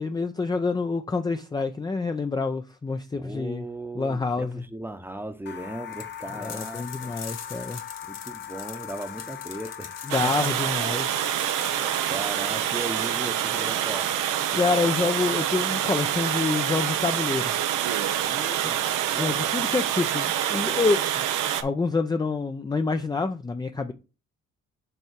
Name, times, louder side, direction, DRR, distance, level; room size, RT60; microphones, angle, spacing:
voice 1, 0.0-3.6 4.0-4.6 6.4-7.8 10.1-11.2 14.5-17.5 18.6-18.7 19.2-21.0 21.6-23.9, left 4 dB, 15° left, 0.4 m, -27 dB
voice 2, 3.2-7.4 8.0-10.5 11.6-14.1 18.2-18.8 19.1-19.4, right 1 dB, 5° right, 0.8 m, -38 dB
sound 1, 5.5-15.2, left 9 dB, 35° left, 0.8 m, -42 dB
sound 2, 5.9-15.3, left 7 dB, 60° left, 1.5 m, -44 dB
Water, 10.1-21.6, right 11 dB, 90° right, 0.7 m, -26 dB
5.5 x 3.5 x 5.8 m
cardioid pair, 90°, 30 cm